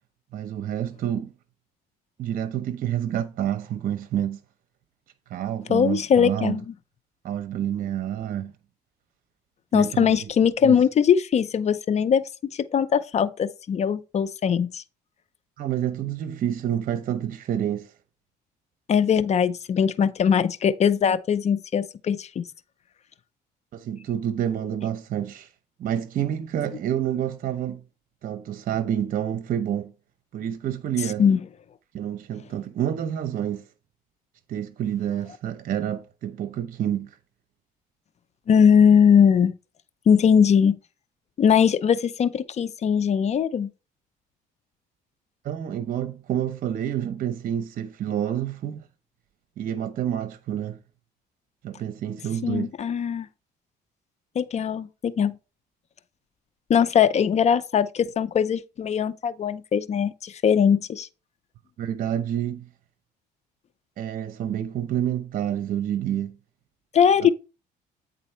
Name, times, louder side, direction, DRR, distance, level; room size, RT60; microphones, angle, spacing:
voice 1, 0.3-1.3 2.2-4.4 5.3-6.6 7.2-8.5 9.7-10.3 10.6-10.8 15.6-17.9 23.7-25.5 25.8-27.8 28.2-29.9 30.3-31.2 31.9-33.7 34.5-37.2 45.4-48.9 49.6-50.8 51.6-52.7 61.8-62.7 64.0-66.4 67.2-67.3, right 10 dB, 55° right, 0.8 m, -28 dB
voice 2, 5.7-6.6 9.7-12.2 12.5-14.8 18.9-22.4 31.2-31.4 38.5-39.5 40.1-40.8 41.4-43.7 52.4-53.3 54.4-55.3 56.7-61.1 66.9-67.3, left 7 dB, 40° left, 0.6 m, -20 dB
9.1 x 3.9 x 4.3 m
cardioid pair, 110°, 17 cm